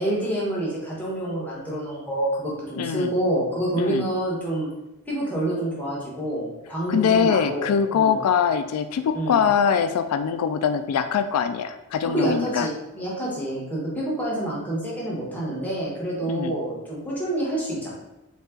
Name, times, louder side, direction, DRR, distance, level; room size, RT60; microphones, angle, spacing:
voice 1, 0.0-4.7 5.1-8.2 9.1-9.4 12.0-17.9, right 1 dB, 5° left, -6 dB, 1.3 m, -27 dB
voice 2, 2.8-3.1 3.8-4.1 6.9-12.7 16.3-16.6, left 7 dB, 85° left, 13 dB, 0.3 m, -23 dB
5.3 x 2.4 x 3.8 m, 0.96 s
head